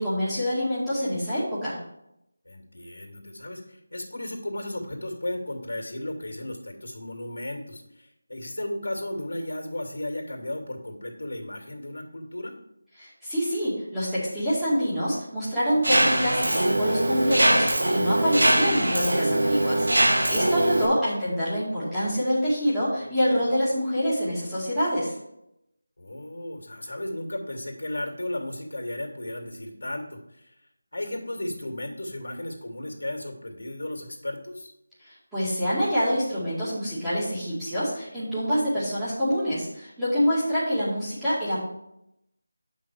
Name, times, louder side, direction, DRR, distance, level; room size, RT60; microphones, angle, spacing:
voice 1, 0.0-1.8 13.0-25.1 35.3-41.7, equal, 5° right, -14 dB, 2.3 m, -26 dB
voice 2, 2.4-12.5 20.5-21.0 26.0-30.5 30.9-34.7, left 1 dB, 80° left, 2 dB, 2.4 m, -35 dB
Mechanisms, 15.8-20.8, right 1 dB, 85° right, 1.8 m, -22 dB
8.8 x 5.9 x 4.7 m, 0.81 s
figure-of-eight pair, 175°, 0 cm